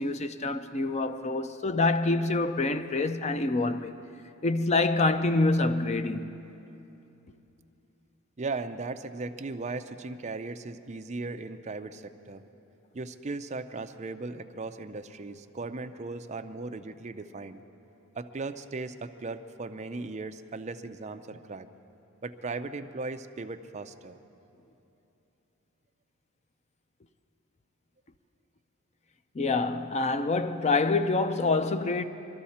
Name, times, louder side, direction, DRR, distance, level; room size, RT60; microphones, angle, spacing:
voice 1, 0.0-3.9 4.4-6.3 29.3-32.0, left 3 dB, 30° left, 0.5 m, -26 dB
voice 2, 8.4-12.4 12.9-17.6 18.2-21.7 22.2-24.2, right 3 dB, 30° right, 0.5 m, -37 dB
24.0 x 13.0 x 4.3 m
head